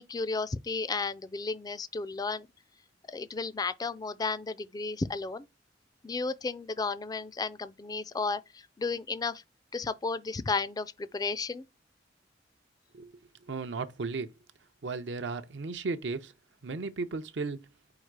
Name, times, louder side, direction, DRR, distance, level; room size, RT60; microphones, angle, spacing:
voice 1, 0.0-2.5 3.1-5.5 6.0-9.4 9.7-11.7, left 4 dB, 20° left, 0.3 m, -33 dB
voice 2, 13.4-14.3 14.8-16.3 16.6-17.7, right 4 dB, 70° right, 0.6 m, -35 dB
4.8 x 2.4 x 4.6 m
head